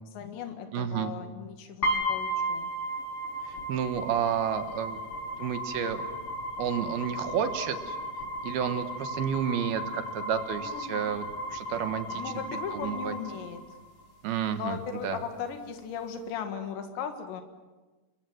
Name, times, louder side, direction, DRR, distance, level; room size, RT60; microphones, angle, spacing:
voice 1, 0.1-2.7 10.6-11.1 12.1-13.6 14.5-17.4, left 7 dB, 90° left, 6 dB, 4.0 m, -37 dB
voice 2, 0.7-1.1 3.4-5.0 5.4-6.0 6.6-8.0 8.4-12.2 12.5-13.1 14.2-15.2, right 8 dB, 70° right, 9 dB, 3.1 m, -31 dB
sound 1, 1.8-13.8, equal, 30° left, 6.6 m, -35 dB
29.5 x 22.5 x 7.9 m, 1.2 s
omnidirectional pair, 4.9 m